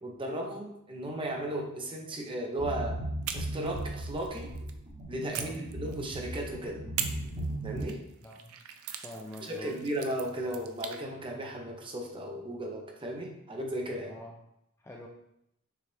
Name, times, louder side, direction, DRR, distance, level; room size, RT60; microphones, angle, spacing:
voice 1, 0.0-3.0 3.3-4.5 5.1-6.8 7.6-8.0 9.4-14.1, right 1 dB, 25° right, 1 dB, 0.7 m, -35 dB
sound 1, 2.6-7.8, right 1 dB, 40° right, 1.1 m, -37 dB
sound 2, 3.2-4.8 5.3-6.4 7.0-11.0, right 9 dB, 75° right, 0.4 m, -41 dB
voice 2, 8.2-8.6 9.0-9.8 14.1-14.4 14.8-15.1, left 1 dB, 10° left, 0 dB, 0.3 m, -45 dB
6.8 x 2.4 x 3.2 m, 0.79 s
head